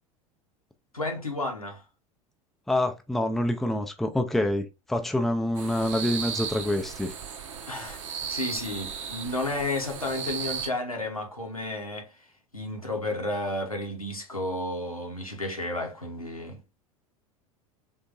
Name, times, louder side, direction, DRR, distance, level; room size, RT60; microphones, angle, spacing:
voice 1, 0.9-1.8 7.7-8.0 8.3-12.2 12.5-16.6, left 2 dB, 90° left, 0.8 m, -32 dB
voice 2, 2.7-7.1, left 1 dB, ahead, 0.4 m, -26 dB
sound 1, 5.5-10.7, right 7 dB, 65° right, 0.6 m, -36 dB
3.6 x 2.6 x 2.4 m
figure-of-eight pair, 80°, 18 cm